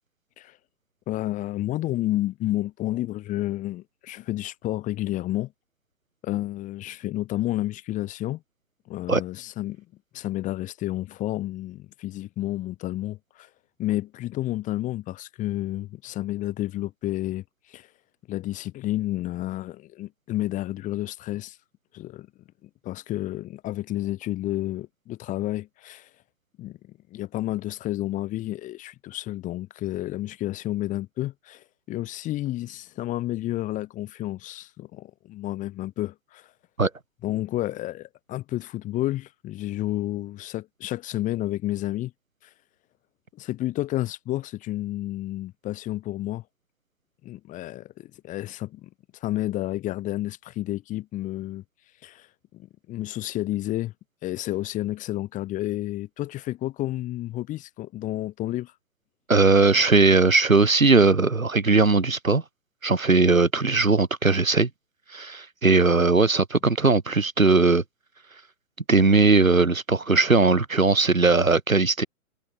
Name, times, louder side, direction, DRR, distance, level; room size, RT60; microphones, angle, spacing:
voice 1, 1.1-5.5 6.2-8.4 8.9-9.8 10.1-13.5 13.8-17.9 18.3-21.6 21.9-22.3 22.6-26.1 26.6-26.8 27.1-36.5 37.2-42.1 42.4-42.5 43.3-46.4 47.2-48.9 49.2-51.6 52.0-52.3 52.5-53.9 54.2-58.7, left 15 dB, 20° left, 3.6 m, -30 dB
voice 2, 59.3-62.4 62.8-64.7 65.1-67.8 68.9-72.1, right 3 dB, 75° right, 7.4 m, -19 dB
figure-of-eight pair, 125°, 41 cm